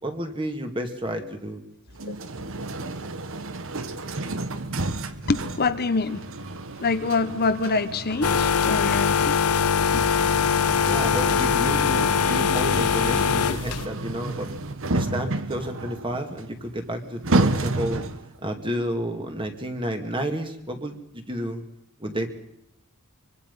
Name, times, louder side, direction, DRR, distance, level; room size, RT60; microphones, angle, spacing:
voice 1, 0.0-1.6 10.9-14.5 14.9-18.1 18.4-21.6 22.0-22.3, equal, 25° right, 5 dB, 2.4 m, -31 dB
sound 1, 1.9-18.4, right 2 dB, 65° right, 1.3 m, -31 dB
voice 2, 5.3-6.2 6.8-9.4, left 3 dB, 45° left, 10 dB, 1.0 m, -26 dB
sound 2, 8.2-13.9, left 6 dB, 80° left, 0.8 m, -22 dB
24.5 x 24.0 x 5.5 m, 0.78 s
head